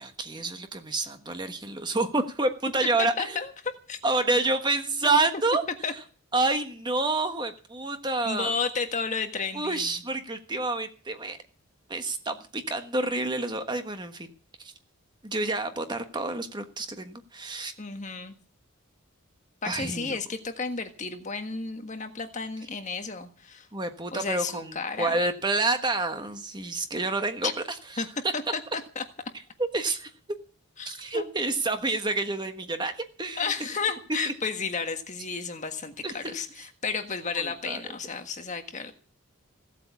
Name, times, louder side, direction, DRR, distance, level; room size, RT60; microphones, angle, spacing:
voice 1, 0.0-3.4 4.0-5.6 6.3-8.5 9.5-11.4 11.9-14.3 14.6-14.7 15.2-17.7 19.6-20.2 23.7-27.5 29.6-30.1 30.8-33.7 36.0-36.4 37.4-37.8, right 2 dB, 20° right, 7 dB, 1.3 m, -28 dB
voice 2, 3.2-4.0 5.8-5.9 8.2-10.0 17.8-18.3 19.6-23.7 24.1-25.2 27.4-27.5 28.0-28.1 28.3-28.6 28.9-29.0 30.8-31.3 33.4-38.9, left 4 dB, 35° left, 7 dB, 1.5 m, -32 dB
16.5 x 8.2 x 8.4 m, 0.39 s
head